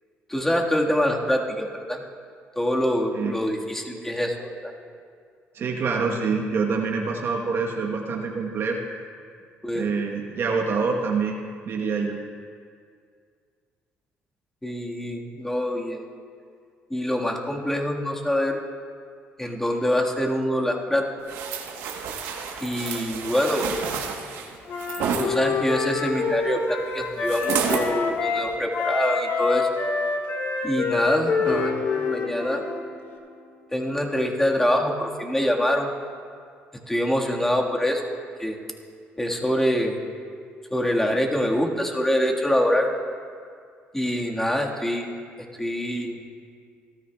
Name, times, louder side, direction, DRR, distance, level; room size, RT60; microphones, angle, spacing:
voice 1, 0.3-2.0 2.5-4.7 9.6-9.9 14.6-16.0 16.9-18.6 19.4-21.1 22.6-23.7 25.2-29.7 30.6-32.6 33.7-35.9 36.9-38.0 38.4-38.6 39.2-40.0 40.7-42.9 43.9-45.1 45.6-46.2, equal, 10° left, 0 dB, 1.7 m, -25 dB
voice 2, 5.5-8.8 9.7-11.4 11.7-12.2, right 5 dB, 55° right, 0 dB, 1.2 m, -26 dB
sound 1, 21.3-25.3 27.3-27.9 28.4-28.5, right 7 dB, 85° right, 1.2 m, -30 dB
Wind instrument woodwind instrument, 24.7-28.5 28.7-32.8, left 4 dB, 60° left, 1.5 m, -27 dB
sound 2, 31.5-33.9, left 4 dB, 80° left, 2.1 m, -34 dB
18.0 x 13.5 x 2.3 m, 2.2 s
cardioid pair, 85°, 5 cm